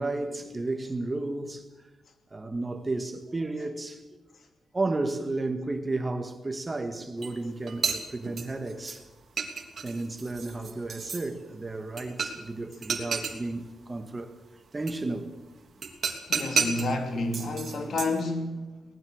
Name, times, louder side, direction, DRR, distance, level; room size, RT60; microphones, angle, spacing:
voice 1, 0.0-1.7 2.3-4.0 4.7-9.1 9.8-14.3 14.7-15.4, right 2 dB, 20° right, 1.8 m, -32 dB
sound 1, 7.2-7.3 7.7-9.0 9.4-11.2 12.0-12.5 12.7-13.4 14.9-15.0 15.8-16.9 17.3-18.2, right 5 dB, 45° right, 3.2 m, -31 dB
voice 2, 16.3-18.7, left 2 dB, 55° left, 3.0 m, -30 dB
23.5 x 19.0 x 6.6 m
wide cardioid pair, 135°, 0 cm